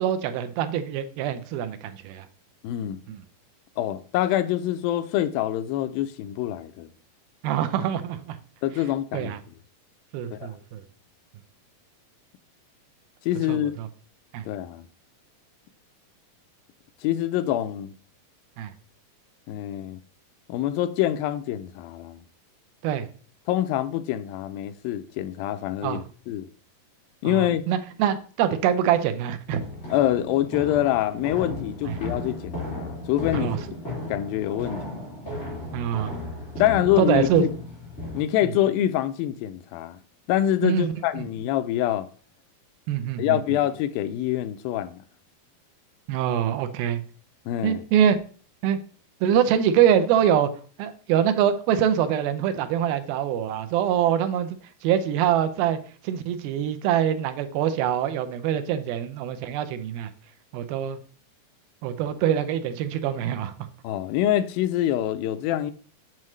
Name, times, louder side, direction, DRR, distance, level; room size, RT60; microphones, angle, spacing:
voice 1, 0.0-2.3 3.1-3.2 7.4-8.4 9.1-9.4 10.1-10.8 13.5-13.9 14.3-14.4 18.6-18.7 22.8-23.1 25.8-26.0 27.2-29.6 31.9-32.0 33.3-33.6 35.7-36.2 37.0-37.5 38.4-38.5 40.6-41.3 42.9-43.4 46.1-47.0 47.6-48.2 48.6-48.8 49.2-50.5 50.8-60.1 60.5-61.0 61.8-63.5, right 9 dB, 90° right, 2.6 m, -24 dB
voice 2, 2.6-3.0 3.8-6.9 8.6-9.4 10.3-10.5 13.3-13.7 14.5-14.9 17.0-17.9 19.5-20.0 20.5-22.2 23.5-26.5 27.2-27.6 29.9-33.6 34.1-35.0 36.6-37.5 38.1-40.0 40.3-42.1 43.2-45.0 47.5-47.8 63.8-65.7, left 12 dB, 85° left, 2.3 m, -25 dB
sound 1, 29.5-38.2, left 1 dB, 20° left, 4.3 m, -35 dB
7.6 x 7.4 x 3.1 m
omnidirectional pair, 4.2 m